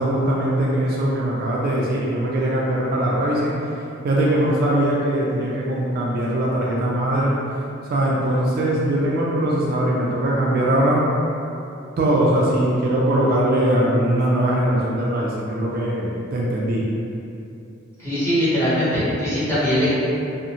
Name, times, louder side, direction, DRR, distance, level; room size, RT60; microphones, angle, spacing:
voice 1, 0.0-3.5 4.0-7.4 7.9-11.0 12.0-16.9, right 1 dB, 50° right, -4 dB, 0.3 m, -21 dB
voice 2, 18.0-19.9, equal, 15° left, -13 dB, 0.9 m, -21 dB
2.4 x 2.0 x 2.8 m, 2.7 s
head